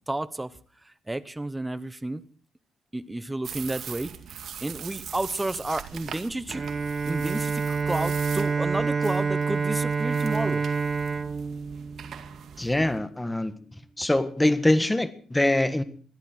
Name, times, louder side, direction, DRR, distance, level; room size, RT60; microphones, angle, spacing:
voice 1, 0.1-0.5 0.8-2.2 2.9-4.1 4.6-6.6 7.0-10.6, right 2 dB, 15° right, 1.1 m, -31 dB
sound 1, 3.4-13.0, right 8 dB, 65° right, 2.1 m, -42 dB
Bowed string instrument, 6.5-12.5, right 5 dB, 35° right, 1.2 m, -28 dB
voice 2, 12.6-13.5 14.0-15.8, left 1 dB, 10° left, 1.7 m, -23 dB
21.5 x 13.5 x 4.5 m
cardioid pair, 90°, 0 cm